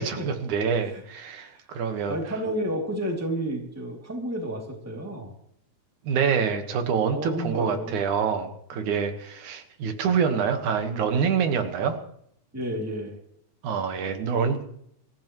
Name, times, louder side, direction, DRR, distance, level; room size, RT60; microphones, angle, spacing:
voice 1, 0.0-2.2 6.0-12.0 13.6-14.6, right 6 dB, 85° right, 6 dB, 2.9 m, -26 dB
voice 2, 2.1-5.3 7.1-8.0 8.8-9.0 12.5-13.2, right 1 dB, 5° right, 1 dB, 2.2 m, -31 dB
25.0 x 14.5 x 3.1 m, 0.70 s
omnidirectional pair, 3.3 m